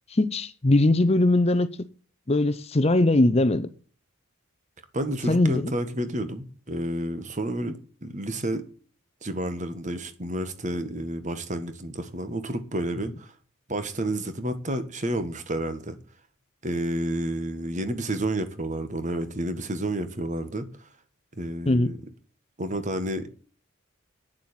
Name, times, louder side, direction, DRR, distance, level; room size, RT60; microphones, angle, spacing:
voice 1, 0.1-1.7 2.3-3.7 5.3-5.7 21.7-21.9, left 2 dB, 30° left, 0.6 m, -21 dB
voice 2, 4.9-8.6 9.2-13.3 13.7-16.0 16.6-20.9 21.4-22.0 22.6-23.3, right 1 dB, 35° right, 1.5 m, -30 dB
9.0 x 7.4 x 8.8 m
head